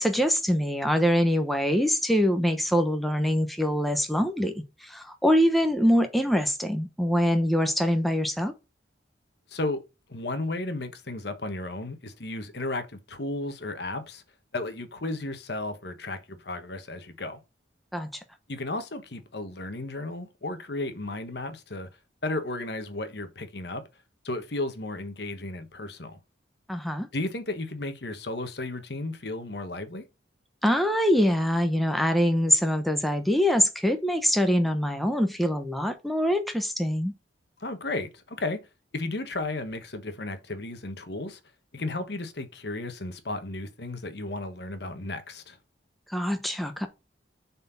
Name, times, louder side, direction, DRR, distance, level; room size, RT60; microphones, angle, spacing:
voice 1, 0.0-8.5 17.9-18.1 26.7-27.1 30.6-37.1 46.1-46.9, equal, ahead, 0.9 m, -24 dB
voice 2, 9.5-9.8 10.1-14.2 14.5-17.4 18.5-21.9 22.2-23.8 24.2-26.2 27.1-30.0 37.6-38.6 38.9-41.4 41.7-45.6, left 2 dB, 60° left, 1.2 m, -34 dB
7.3 x 4.3 x 5.6 m
head